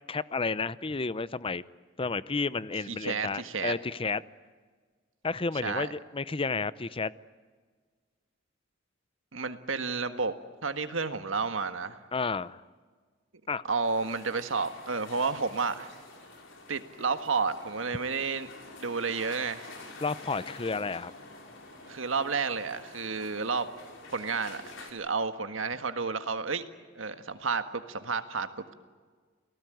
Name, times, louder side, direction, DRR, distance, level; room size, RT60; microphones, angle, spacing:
voice 1, 0.1-1.6 2.0-4.2 5.2-7.1 12.1-12.6 13.5-13.6 20.0-21.1, left 4 dB, 30° left, 17 dB, 0.6 m, -31 dB
voice 2, 2.9-3.7 5.6-5.9 9.3-10.3 10.6-12.0 13.7-15.9 16.7-18.5 18.8-19.7 21.9-23.7 24.1-26.7 27.0-28.7, right 4 dB, 80° right, 9 dB, 1.7 m, -31 dB
sound 1, 13.8-24.9, left 3 dB, 70° left, 5.0 m, -48 dB
29.0 x 18.5 x 9.3 m, 1.5 s
head